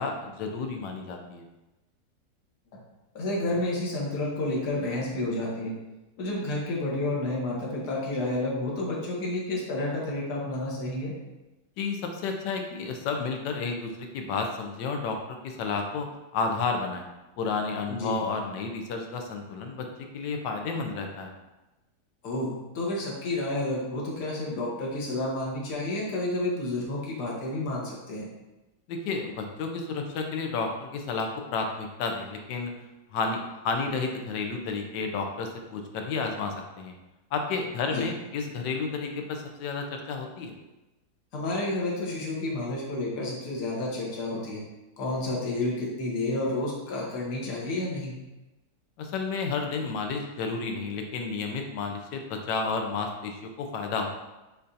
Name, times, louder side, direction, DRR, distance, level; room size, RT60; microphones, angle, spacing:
voice 1, 0.0-1.5 11.8-15.2 15.4-16.1 16.3-17.0 17.4-19.9 20.1-21.3 28.9-32.7 33.1-36.9 37.3-40.5 49.0-54.1, left 4 dB, 85° left, 3 dB, 1.2 m, -31 dB
voice 2, 3.1-5.7 6.2-11.1 17.9-18.1 22.2-28.3 37.9-38.1 41.3-44.6 45.0-48.1, left 2 dB, 70° left, -3 dB, 1.6 m, -30 dB
6.5 x 2.5 x 2.7 m, 1.0 s
omnidirectional pair, 1.8 m